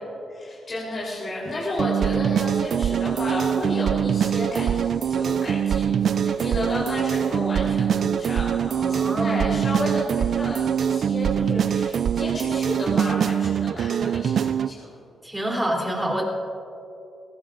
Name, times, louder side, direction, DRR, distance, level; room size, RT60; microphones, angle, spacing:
voice 1, 0.3-14.8, left 1 dB, 40° left, -6 dB, 3.6 m, -32 dB
sound 1, 1.8-14.7, right 8 dB, 60° right, 0.3 m, -23 dB
voice 2, 8.8-9.6 15.2-16.2, right 1 dB, 10° right, -2 dB, 3.3 m, -27 dB
21.5 x 18.0 x 2.5 m, 2.7 s
cardioid pair, 105°, 0 cm